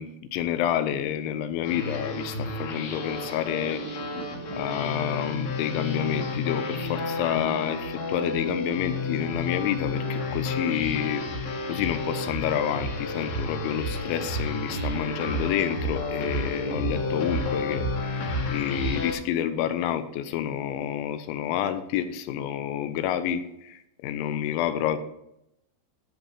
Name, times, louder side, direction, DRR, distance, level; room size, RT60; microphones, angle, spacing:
voice 1, 0.0-4.0 4.6-25.0, left 10 dB, 80° left, 10 dB, 2.9 m, -29 dB
sound 1, 1.6-19.1, left 2 dB, 55° left, 2.7 m, -31 dB
15.0 x 6.4 x 3.4 m, 0.79 s
omnidirectional pair, 5.7 m